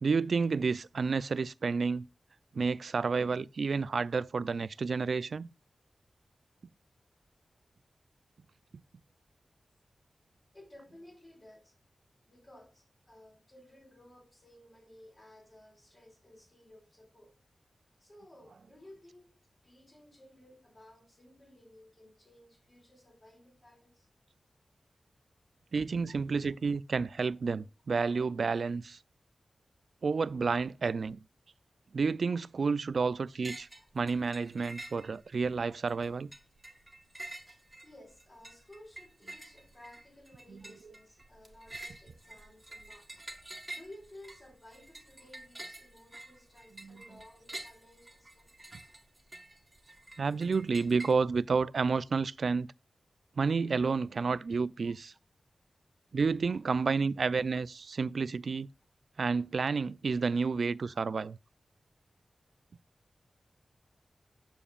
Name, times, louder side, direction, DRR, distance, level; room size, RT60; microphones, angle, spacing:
voice 1, 0.0-2.1 2.5-5.5 25.7-29.0 30.0-31.2 31.9-33.7 33.9-36.3 40.5-40.6 46.8-46.9 50.2-52.7 53.4-55.1 56.1-58.7 59.2-61.4, right 4 dB, 70° right, 0.3 m, -30 dB
voice 2, 10.5-11.7 12.2-17.3 18.0-19.4 19.6-24.1 33.7-33.9 37.8-43.1 43.7-48.5 56.5-56.6, left 1 dB, 30° left, 4.5 m, -56 dB
sound 1, 33.4-33.8 34.1-35.5 35.9-51.1, right 2 dB, 20° right, 1.7 m, -48 dB
8.9 x 6.9 x 2.4 m
wide cardioid pair, 95°, 0 cm